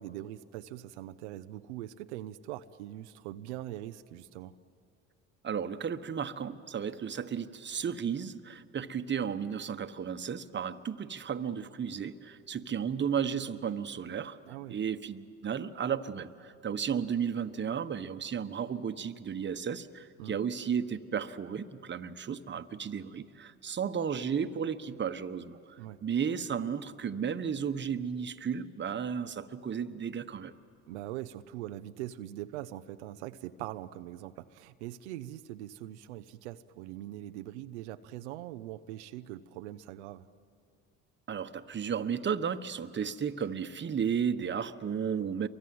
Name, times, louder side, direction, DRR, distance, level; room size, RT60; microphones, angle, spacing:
voice 1, 0.0-4.5 14.5-14.8 20.2-20.4 25.8-26.0 30.9-40.3, right 14 dB, 90° right, 10 dB, 0.7 m, -42 dB
voice 2, 5.4-14.4 14.7-30.5 41.3-45.5, right 7 dB, 35° right, 10 dB, 1.3 m, -34 dB
30.0 x 24.0 x 7.8 m, 2.4 s
hypercardioid pair, 70°, 33 cm